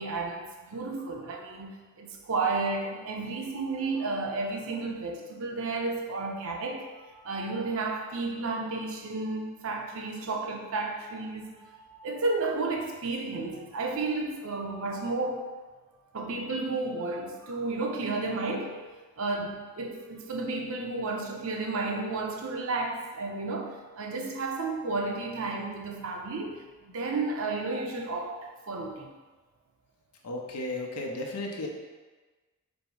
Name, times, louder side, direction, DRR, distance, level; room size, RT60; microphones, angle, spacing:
voice 1, 0.0-15.5 16.1-18.8 19.2-28.4 28.7-29.1, right 3 dB, 65° right, 1 dB, 0.6 m, -32 dB
voice 2, 30.2-31.7, left 2 dB, 90° left, 1 dB, 0.7 m, -34 dB
5.2 x 2.0 x 4.6 m, 1.3 s
head